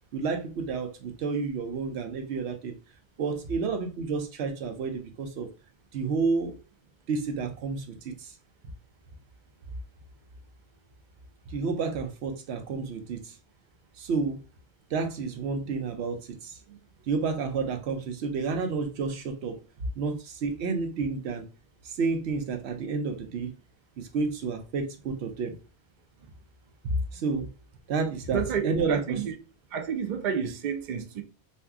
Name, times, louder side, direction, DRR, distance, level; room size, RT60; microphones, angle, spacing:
voice 1, 0.1-2.8 3.2-5.5 5.9-6.5 7.1-8.3 11.5-13.3 14.0-14.4 14.9-16.8 17.1-19.6 20.0-21.5 21.8-23.5 24.0-25.5 27.1-27.5 27.9-29.2, right 4 dB, 85° right, 0.9 m, -30 dB
voice 2, 28.3-29.3 29.7-31.2, right 6 dB, 60° right, 0.6 m, -30 dB
2.6 x 2.2 x 3.4 m
omnidirectional pair, 1.1 m